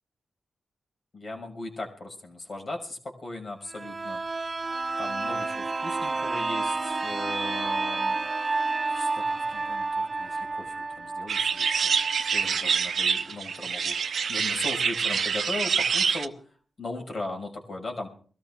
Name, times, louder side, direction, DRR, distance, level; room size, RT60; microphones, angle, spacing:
voice 1, 1.1-4.2 5.0-8.2 8.9-11.9 12.2-16.4 16.8-18.1, left 2 dB, 55° left, 2 dB, 5.8 m, -38 dB
sound 1, 3.7-13.2 13.6-13.7, right 3 dB, 40° right, 0.6 m, -30 dB
sound 2, 11.3-16.3, right 6 dB, 75° right, 0.8 m, -26 dB
22.0 x 14.0 x 3.7 m, 0.44 s
supercardioid pair, 45°, 0 cm